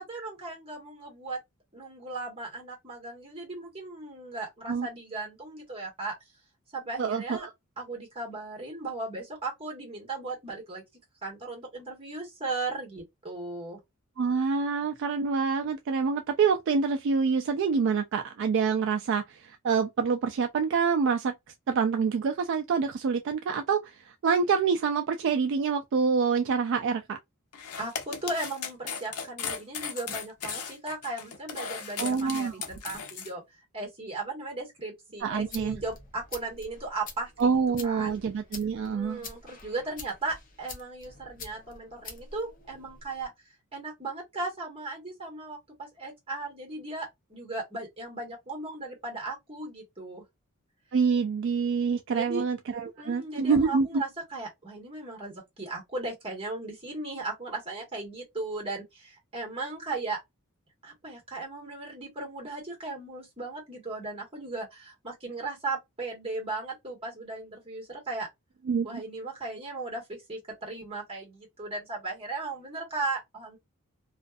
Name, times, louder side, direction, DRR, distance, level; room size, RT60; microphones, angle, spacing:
voice 1, 0.0-1.4 1.7-6.1 6.7-7.5 7.8-10.8 11.2-13.8 27.8-33.4 33.7-37.5 37.8-38.1 38.8-43.3 43.7-50.2 52.1-52.4 53.0-60.2 60.8-68.3 68.8-73.6, right 3 dB, 25° right, 1.3 m, -37 dB
voice 2, 7.0-7.5 14.2-21.3 21.7-23.9 24.2-27.2 32.0-32.5 35.2-35.8 37.4-39.2 50.9-53.9 68.7-69.0, right 5 dB, 55° right, 0.3 m, -26 dB
sound 1, 27.5-33.3, left 6 dB, 85° left, 0.6 m, -36 dB
sound 2, 35.2-43.3, left 4 dB, 40° left, 0.7 m, -47 dB
2.5 x 2.4 x 2.3 m
head